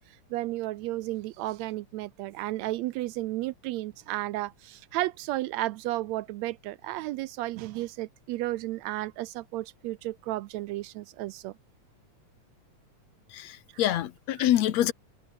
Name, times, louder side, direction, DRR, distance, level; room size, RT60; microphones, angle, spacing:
voice 1, 0.3-11.5 13.7-14.0, right 17 dB, 75° right, 1.8 m, -33 dB
voice 2, 13.3-14.9, left 12 dB, 70° left, 2.2 m, -26 dB
omnidirectional pair, 3.3 m